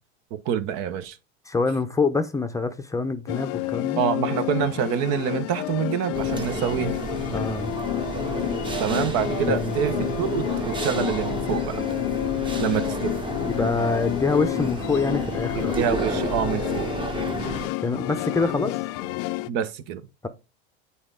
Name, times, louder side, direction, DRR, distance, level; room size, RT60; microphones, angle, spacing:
voice 1, 0.3-1.2 4.0-7.0 8.8-11.8 12.6-13.2 15.6-16.9 19.5-20.1, right 9 dB, 55° right, 0.8 m, -26 dB
voice 2, 1.5-4.0 7.3-7.7 9.5-9.8 13.4-15.7 17.8-18.7 20.2-20.3, left 4 dB, 10° left, 0.7 m, -25 dB
sound 1, 3.3-19.5, left 18 dB, 50° left, 0.5 m, -30 dB
sound 2, 6.1-17.7, right 2 dB, 15° right, 0.9 m, -31 dB
7.9 x 4.2 x 3.7 m
hypercardioid pair, 90°, 32 cm